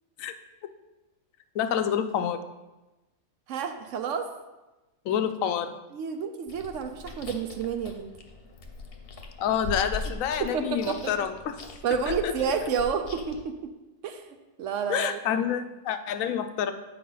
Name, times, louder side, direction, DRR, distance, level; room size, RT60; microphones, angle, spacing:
voice 1, 1.5-2.5 5.1-5.8 9.4-11.5 12.2-12.3 14.9-16.7, left 8 dB, 75° left, 9 dB, 0.9 m, -28 dB
voice 2, 3.5-4.3 5.9-8.1 10.4-11.1 11.8-13.7 14.0-14.2 14.6-15.2, right 6 dB, 70° right, 6 dB, 0.9 m, -30 dB
Chewing mastication, 6.5-13.4, left 2 dB, 50° left, 0.9 m, -40 dB
7.9 x 5.0 x 3.8 m, 1.1 s
omnidirectional pair, 1.5 m